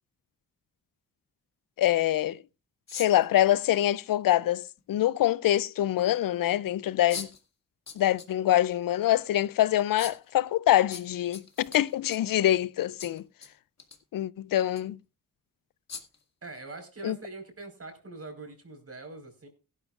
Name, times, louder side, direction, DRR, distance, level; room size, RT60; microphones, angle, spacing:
voice 1, 1.8-2.4 2.9-7.3 8.0-13.2 14.1-15.0 17.0-17.2, left 13 dB, 85° left, 0.5 m, -25 dB
sound 1, 2.9-3.3 4.8-4.9 7.1-7.4 7.9-8.3 8.7-8.8 10.0-10.3 10.9-12.4 13.0-13.5 13.8-14.0 14.7-14.8 15.9-16.2, left 5 dB, 50° left, 2.2 m, -41 dB
voice 2, 16.4-19.5, right 3 dB, 45° right, 4.5 m, -43 dB
16.5 x 12.0 x 2.4 m
cardioid pair, 65°, 33 cm